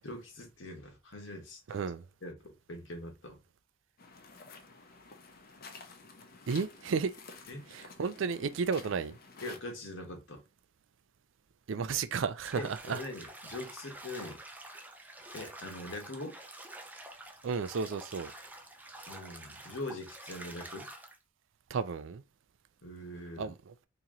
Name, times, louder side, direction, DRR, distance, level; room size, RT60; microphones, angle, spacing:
voice 1, 0.0-1.8 2.2-3.4 7.5-7.7 9.4-10.4 12.6-14.4 15.3-16.4 19.1-20.9 22.8-23.5, left 1 dB, 80° left, 1.2 m, -42 dB
voice 2, 1.7-2.0 6.5-7.1 7.7-9.2 11.7-13.0 17.4-18.3 21.7-22.2 23.4-23.7, right 5 dB, 85° right, 0.4 m, -33 dB
sound 1, 4.0-9.6, left 4 dB, 55° left, 0.6 m, -52 dB
Bathtub (filling or washing), 12.4-21.2, right 1 dB, 10° right, 0.5 m, -48 dB
2.9 x 2.8 x 3.7 m
head